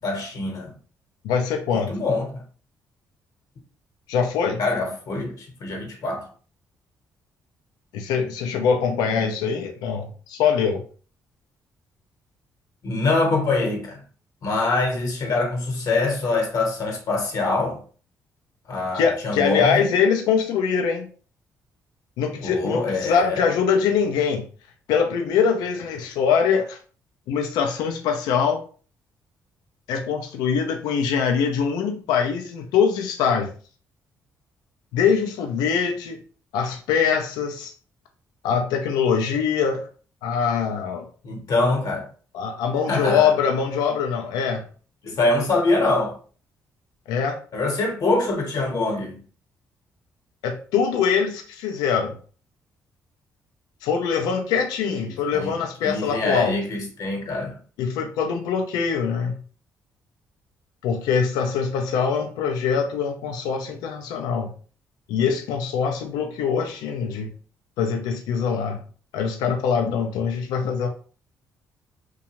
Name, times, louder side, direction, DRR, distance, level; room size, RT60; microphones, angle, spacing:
voice 1, 0.0-0.7 1.7-2.4 4.6-6.3 12.8-14.0 14.4-17.8 18.7-19.9 22.4-23.5 41.2-42.1 42.9-43.3 45.0-46.2 47.5-49.2 54.8-57.6, left 2 dB, 65° left, 1.0 m, -24 dB
voice 2, 1.2-1.9 4.1-4.6 7.9-10.8 18.9-21.1 22.2-24.5 24.9-26.8 27.3-28.6 29.9-33.5 34.9-36.2 36.5-37.7 38.4-39.8 40.2-41.1 42.3-44.6 47.1-47.4 50.4-52.2 53.8-56.6 57.8-59.4 60.8-64.5 65.1-67.3 67.8-68.8 69.1-70.9, left 6 dB, 85° left, 0.4 m, -23 dB
2.7 x 2.2 x 2.9 m
supercardioid pair, 65°, 7 cm